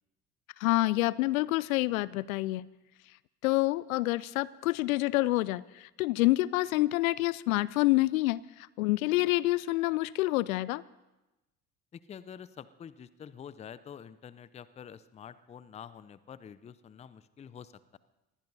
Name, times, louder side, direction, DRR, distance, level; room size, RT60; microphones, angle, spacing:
voice 1, 0.6-2.7 3.4-10.8, left 19 dB, 65° left, 22 dB, 0.5 m, -27 dB
voice 2, 11.9-18.0, left 8 dB, 15° left, 17 dB, 0.5 m, -47 dB
25.5 x 21.0 x 2.7 m, 1.0 s
figure-of-eight pair, 65°, 46 cm